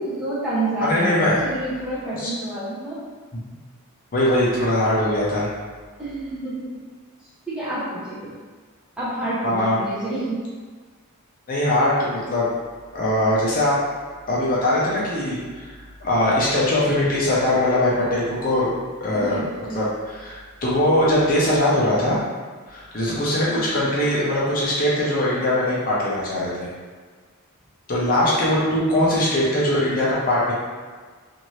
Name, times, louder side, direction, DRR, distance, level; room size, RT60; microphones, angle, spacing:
voice 1, 0.0-3.0 6.0-6.8 7.5-8.3 9.0-10.5 19.1-19.8 23.4-23.7, right 1 dB, 5° right, -10 dB, 0.7 m, -29 dB
voice 2, 0.8-1.4 2.2-2.3 4.1-5.5 9.4-9.8 11.5-12.5 12.9-13.8 14.3-15.7 16.0-18.7 19.0-19.4 19.7-22.2 22.7-26.7 27.9-30.5, left 1 dB, 40° left, -6 dB, 0.6 m, -21 dB
2.7 x 2.6 x 3.0 m, 1.5 s
head